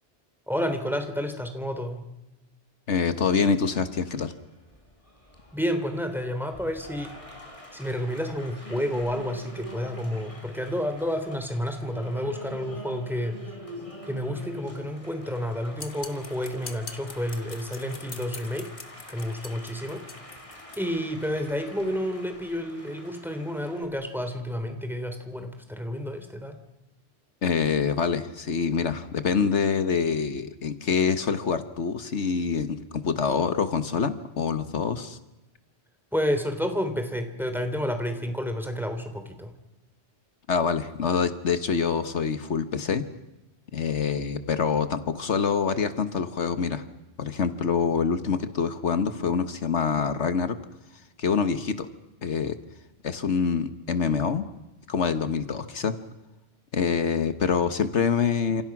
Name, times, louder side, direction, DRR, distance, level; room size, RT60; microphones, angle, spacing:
voice 1, 0.5-2.1 5.5-7.1 7.7-13.4 14.1-18.7 19.1-20.0 20.8-26.6 36.1-39.5, equal, ahead, 6 dB, 3.1 m, -30 dB
voice 2, 2.9-4.3 27.4-35.2 40.5-43.0 43.7-46.8 47.2-50.6 51.2-51.9 52.2-52.6 53.0-54.4 54.9-55.9 56.7-58.6, left 6 dB, 75° left, 10 dB, 1.6 m, -25 dB
Applause, 4.1-23.9, equal, 30° left, 3.8 m, -45 dB
sound 1, 15.8-20.8, left 4 dB, 50° left, 1.9 m, -43 dB
30.0 x 28.0 x 6.0 m, 0.98 s
omnidirectional pair, 1.2 m